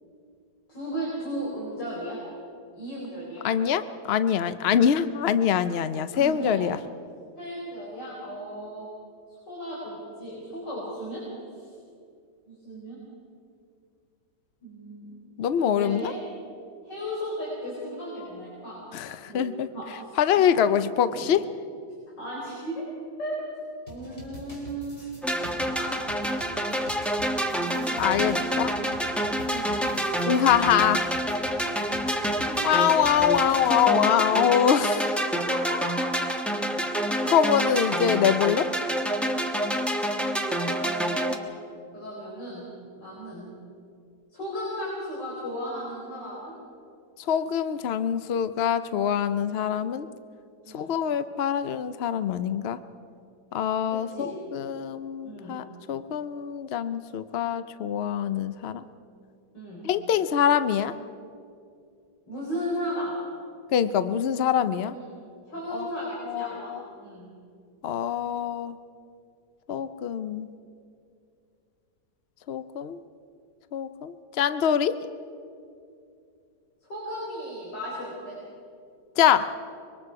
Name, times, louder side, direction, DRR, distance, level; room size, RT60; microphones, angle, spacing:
voice 1, 0.7-2.2 2.7-3.4 6.1-6.6 7.4-8.9 9.5-11.2 11.5-11.7 12.5-13.0 14.6-15.2 15.7-16.2 16.8-20.7 21.1-21.3 22.2-22.9 23.2-23.4 23.9-25.0 25.4-26.0 27.4-28.8 29.5-29.8 32.5-32.6 34.9-35.0 35.5-36.4 39.7-39.9 40.5-41.3 41.9-42.7 43.0-43.5 44.3-46.5 50.6-50.9 53.9-54.4 55.2-55.6 59.5-59.8 62.3-63.1 64.9-65.2 65.5-67.3 76.8-78.4, equal, 90° left, -6 dB, 5.2 m, -36 dB
voice 2, 3.4-6.8 15.4-16.0 18.9-19.7 20.2-21.4 28.0-28.8 30.3-31.1 32.6-35.1 37.3-38.7 47.3-50.1 50.7-52.8 53.5-58.8 59.8-60.9 63.7-65.0 65.7-65.9 66.3-66.8 67.8-68.8 69.7-70.5 72.5-73.0 73.7-75.0 79.2-79.5, left 9 dB, 70° left, 12 dB, 0.5 m, -24 dB
sound 1, 23.9-34.0, right 1 dB, 25° left, 4.0 m, -45 dB
sound 2, 25.2-41.4, right 1 dB, ahead, 0.9 m, -27 dB
25.0 x 22.0 x 4.8 m, 2.4 s
omnidirectional pair, 1.9 m